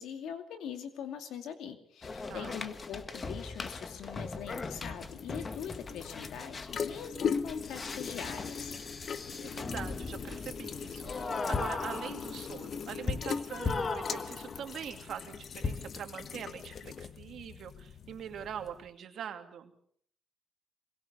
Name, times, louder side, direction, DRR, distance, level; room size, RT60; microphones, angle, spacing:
voice 1, 0.0-8.7, left 8 dB, 80° left, 7 dB, 2.6 m, -42 dB
sound 1, 2.0-14.8 15.6-16.1, left 4 dB, 35° left, 1.6 m, -38 dB
sound 2, 3.9-18.9, left 6 dB, 55° left, 1.2 m, -40 dB
voice 2, 9.3-19.7, right 8 dB, 65° right, 6 dB, 2.6 m, -43 dB
23.0 x 21.0 x 6.9 m, 0.64 s
cardioid pair, 90°, 0 cm